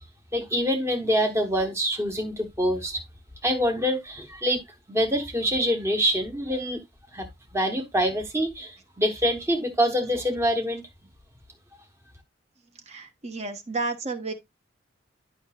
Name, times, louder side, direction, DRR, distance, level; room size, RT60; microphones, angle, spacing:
voice 1, 0.3-3.0 3.4-4.6 4.9-6.8 7.1-7.3 7.5-10.8, equal, 15° right, 1.1 m, -25 dB
voice 2, 12.9-14.3, right 3 dB, 35° right, 1.1 m, -31 dB
11.0 x 5.7 x 2.4 m
head